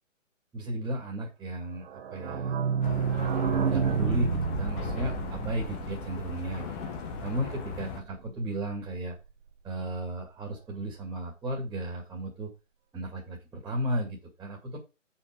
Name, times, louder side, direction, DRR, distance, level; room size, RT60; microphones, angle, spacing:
voice 1, 0.5-3.2 3.7-6.7 7.2-9.2 9.6-12.5 12.9-14.8, right 1 dB, 5° right, 0 dB, 2.2 m, -34 dB
sound 1, 1.9-7.4 7.7-7.8 8.0-8.1 8.4-8.5, right 6 dB, 45° right, 1.4 m, -30 dB
sound 2, 2.8-8.0, left 4 dB, 10° left, 0.7 m, -38 dB
8.2 x 5.7 x 5.1 m, 0.27 s
figure-of-eight pair, 145°, 38 cm